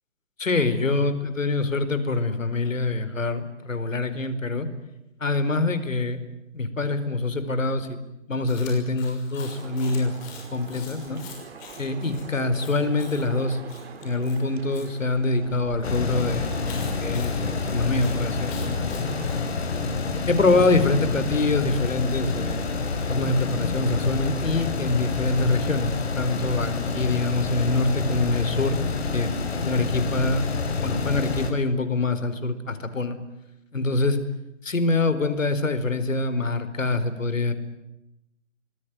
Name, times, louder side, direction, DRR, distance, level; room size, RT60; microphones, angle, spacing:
voice 1, 0.4-4.7 5.2-6.2 6.5-8.0 8.3-10.1 10.5-11.2 11.7-13.6 14.0-18.8 20.3-22.7 23.1-28.8 29.1-30.5 30.8-33.2 33.7-34.2 34.6-37.5, left 3 dB, 85° left, 11 dB, 4.8 m, -25 dB
Chewing mastication, 8.5-14.9 16.6-19.4, left 6 dB, 20° left, 6.1 m, -46 dB
sound 1, 9.4-19.4, right 6 dB, 55° right, 4.3 m, -43 dB
sound 2, 15.8-31.5, left 4 dB, 55° left, 5.7 m, -28 dB
26.5 x 20.5 x 9.6 m, 0.88 s
hypercardioid pair, 155°, 38 cm